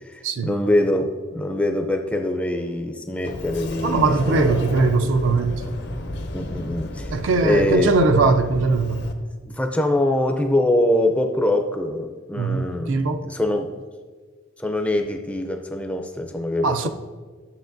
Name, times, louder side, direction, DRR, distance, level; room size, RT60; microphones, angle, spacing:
voice 1, 0.1-4.6 6.3-7.2 7.4-7.9 9.4-13.7 14.6-16.9, left 1 dB, 5° left, 0.4 m, -23 dB
Sliding door, 3.2-9.1, left 1 dB, 55° left, 0.7 m, -32 dB
voice 2, 3.8-5.6 7.1-9.0 12.4-13.3 16.6-16.9, right 3 dB, 65° right, 0.4 m, -20 dB
11.5 x 7.0 x 2.6 m
head